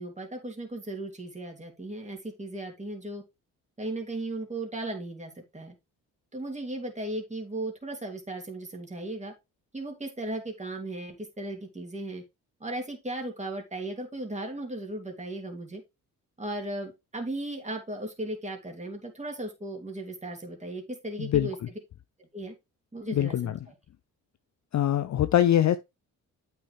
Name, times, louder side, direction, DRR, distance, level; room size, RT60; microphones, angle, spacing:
voice 1, 0.0-3.2 3.8-5.7 6.3-9.3 9.7-12.2 12.6-15.8 16.4-21.6 22.3-22.5 22.9-23.7, right 1 dB, 15° right, 3.0 m, -36 dB
voice 2, 21.2-21.5 23.1-23.6 24.7-25.8, left 11 dB, 45° left, 0.6 m, -23 dB
8.6 x 5.8 x 3.3 m
hypercardioid pair, 50°, 41 cm